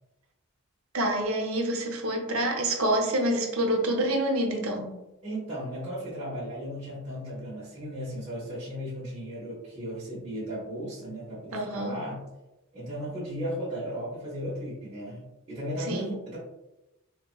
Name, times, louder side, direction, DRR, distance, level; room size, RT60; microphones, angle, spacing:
voice 1, 0.9-4.9 11.5-12.0 15.9-16.1, right 1 dB, 80° right, 3 dB, 0.7 m, -27 dB
voice 2, 5.2-12.2 12.7-15.2 15.5-16.4, equal, 30° right, -10 dB, 1.1 m, -35 dB
3.9 x 2.8 x 2.3 m, 0.94 s
head